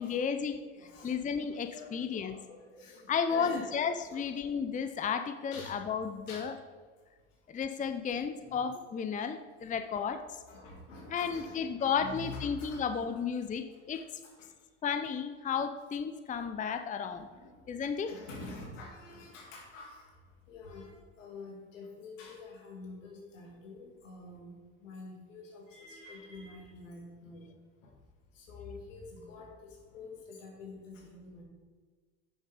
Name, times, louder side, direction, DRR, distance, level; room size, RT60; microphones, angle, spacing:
voice 1, 0.0-2.4 3.1-6.5 7.5-10.2 11.1-14.2 14.8-17.3 17.7-18.1, left 6 dB, 20° left, 9 dB, 0.6 m, -33 dB
voice 2, 0.8-3.7 4.1-4.5 5.5-5.8 6.3-6.5 8.3-8.7 10.5-13.1 13.7-14.5 17.0-17.6 18.0-20.2 20.5-27.5 27.8-27.9 28.3-31.4, left 3 dB, 85° left, -1 dB, 2.6 m, -47 dB
8.8 x 6.9 x 5.1 m, 1.5 s
hypercardioid pair, 75°, 37 cm